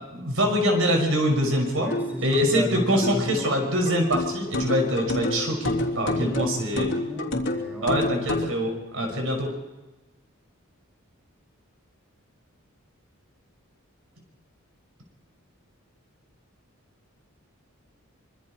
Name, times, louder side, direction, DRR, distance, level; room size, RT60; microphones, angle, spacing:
voice 1, 0.1-1.9 2.2-6.9 7.8-9.5, equal, 65° right, 2 dB, 5.7 m, -24 dB
voice 2, 1.8-3.5 6.1-8.0, left 1 dB, 10° right, 0 dB, 5.2 m, -34 dB
sound 1, 1.9-8.6, left 1 dB, 55° left, 3.4 m, -29 dB
25.0 x 24.5 x 4.4 m, 1.1 s
head